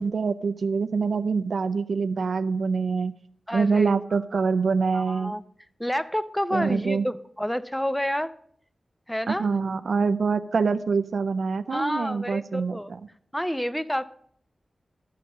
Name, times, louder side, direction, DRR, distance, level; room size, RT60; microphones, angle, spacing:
voice 1, 0.0-3.1 3.5-5.3 6.5-7.0 9.3-13.0, right 5 dB, 80° right, 11 dB, 0.4 m, -25 dB
voice 2, 3.5-3.9 4.3-4.4 4.9-5.4 5.8-8.3 9.1-9.6 11.7-12.9 13.3-14.0, equal, 5° left, 15 dB, 0.5 m, -29 dB
11.5 x 6.5 x 5.4 m, 0.63 s
wide cardioid pair, 100°, 0 cm